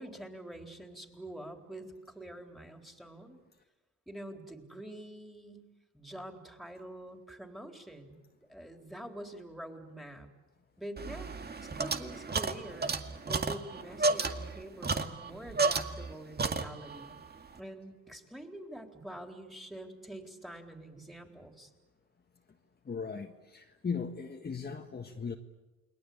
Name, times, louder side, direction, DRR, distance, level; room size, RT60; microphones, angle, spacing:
voice 1, 0.0-3.4 4.1-5.7 5.9-8.2 8.5-10.3 10.8-12.9 13.3-17.2 17.6-21.7, right 1 dB, ahead, 4 dB, 4.0 m, -46 dB
sound 1, 11.0-16.1 16.4-17.1, right 3 dB, 35° right, 2.1 m, -32 dB
voice 2, 22.9-25.4, left 5 dB, 30° left, 3 dB, 1.7 m, -38 dB
29.0 x 22.0 x 8.7 m, 1.2 s
cardioid pair, 90°, 30 cm